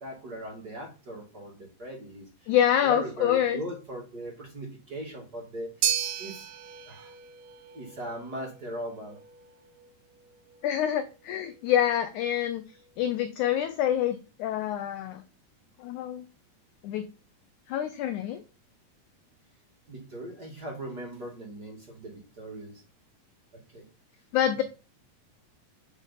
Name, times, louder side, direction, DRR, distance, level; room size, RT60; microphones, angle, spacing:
voice 1, 0.0-5.9 6.2-6.5 6.9-7.1 7.7-9.2 19.9-22.8 23.5-23.8 24.5-24.6, right 1 dB, 35° right, 0 dB, 2.0 m, -39 dB
voice 2, 2.5-3.6 10.6-12.6 13.0-15.2 15.8-16.3 16.8-17.1 17.7-18.4 24.3-24.6, left 10 dB, 85° left, 10 dB, 1.7 m, -26 dB
sound 1, 5.8-14.2, right 11 dB, 75° right, 2.5 m, -37 dB
8.2 x 4.8 x 5.6 m, 0.34 s
omnidirectional pair, 4.2 m